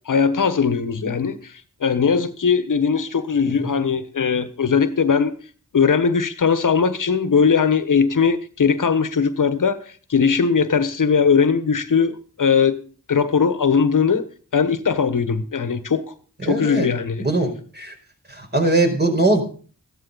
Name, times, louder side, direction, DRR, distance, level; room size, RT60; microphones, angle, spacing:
voice 1, 0.1-1.4 1.8-5.3 5.7-9.8 10.1-12.8 13.1-14.2 14.5-16.0 16.4-17.2, left 6 dB, 70° left, 1.3 m, -19 dB
voice 2, 16.4-16.9 17.2-17.9 18.3-19.4, right 2 dB, 30° right, 4.8 m, -21 dB
15.0 x 13.0 x 4.1 m
cardioid pair, 55°, 33 cm